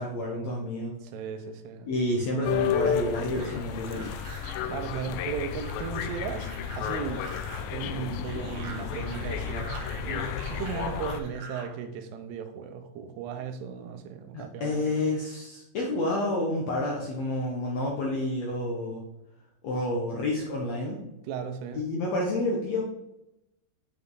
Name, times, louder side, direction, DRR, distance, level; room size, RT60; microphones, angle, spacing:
voice 1, 0.0-0.9 1.9-4.1 14.3-19.0 19.6-21.0 21.7-22.8, left 1 dB, 70° left, -2 dB, 1.7 m, -29 dB
voice 2, 1.1-1.9 4.7-7.2 7.7-9.7 10.0-15.0 21.3-21.8, right 7 dB, 85° right, 8 dB, 2.9 m, -36 dB
sound 1, 2.4-11.2, left 8 dB, 85° left, 2.0 m, -32 dB
sound 2, 3.4-11.8, right 3 dB, 65° right, 2.3 m, -45 dB
7.7 x 5.8 x 3.9 m, 0.88 s
omnidirectional pair, 4.6 m